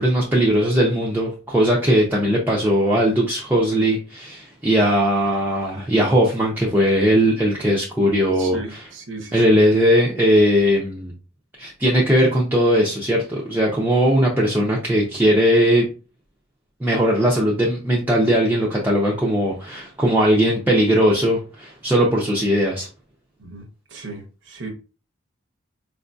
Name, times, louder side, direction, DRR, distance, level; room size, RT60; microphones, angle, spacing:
voice 1, 0.0-8.8 9.3-11.1 11.6-15.9 16.8-22.9, equal, 10° right, 0.5 m, -19 dB
voice 2, 8.4-9.4 23.4-23.6 23.9-24.7, right 3 dB, 70° right, 0.7 m, -35 dB
4.5 x 2.5 x 2.2 m
head